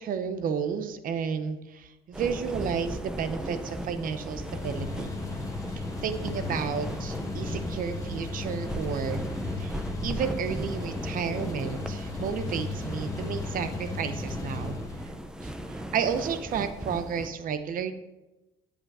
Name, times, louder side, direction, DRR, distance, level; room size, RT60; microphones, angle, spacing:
voice 1, 0.0-5.1 5.8-9.2 9.6-15.1 15.4-15.5 15.9-17.9, right 7 dB, 55° right, 10 dB, 0.7 m, -32 dB
sound 1, 2.1-17.3, equal, 5° right, 0.7 m, -37 dB
sound 2, 4.3-15.1, left 3 dB, 20° left, 1.1 m, -36 dB
8.7 x 5.2 x 4.7 m, 1.0 s
cardioid pair, 110°, 17 cm